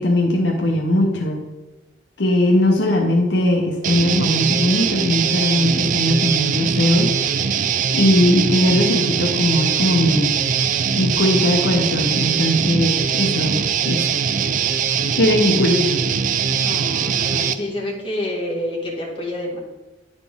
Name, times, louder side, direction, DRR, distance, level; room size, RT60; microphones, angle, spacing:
voice 1, 0.0-1.4 2.2-7.1 7.9-10.4 11.0-14.0 15.2-15.8, left 1 dB, 75° left, 1 dB, 0.8 m, -19 dB
Guitar, 3.8-17.5, right 7 dB, 45° right, 0.3 m, -21 dB
voice 2, 16.6-19.6, left 1 dB, 30° left, -3 dB, 1.7 m, -28 dB
9.7 x 4.1 x 3.5 m, 1.1 s
head